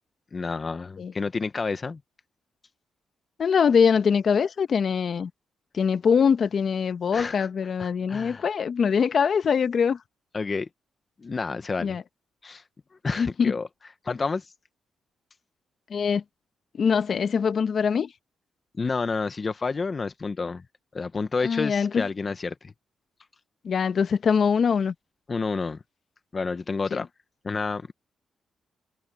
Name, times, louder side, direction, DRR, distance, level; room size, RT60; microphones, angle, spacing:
voice 1, 0.3-2.0 7.1-7.5 7.8-8.5 10.3-10.7 11.2-12.0 12.4-12.6 13.0-13.7 14.0-14.5 18.8-20.6 20.9-22.7 25.3-25.8 26.3-27.1 27.4-27.9, left 4 dB, 35° left, 1.1 m, -29 dB
voice 2, 3.4-5.3 5.7-10.0 11.8-12.0 13.2-13.5 15.9-16.2 16.7-18.1 21.4-22.0 23.6-24.9 26.9-27.0, left 6 dB, 55° left, 1.2 m, -23 dB
cardioid pair, 75°, 0 cm